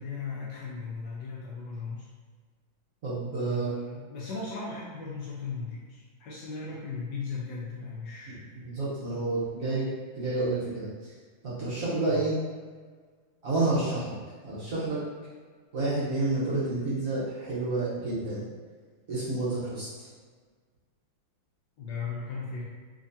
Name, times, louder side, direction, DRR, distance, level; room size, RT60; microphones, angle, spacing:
voice 1, 0.0-2.1 3.4-8.6 12.0-12.3 21.8-22.6, left 4 dB, 70° left, -5 dB, 1.1 m, -37 dB
voice 2, 3.0-3.7 8.6-9.9 10.1-11.1 11.4-12.4 13.4-14.1 14.4-15.0 15.7-18.4 19.1-20.1, right 2 dB, 50° right, -10 dB, 1.1 m, -29 dB
3.7 x 3.1 x 2.6 m, 1.6 s
omnidirectional pair, 2.2 m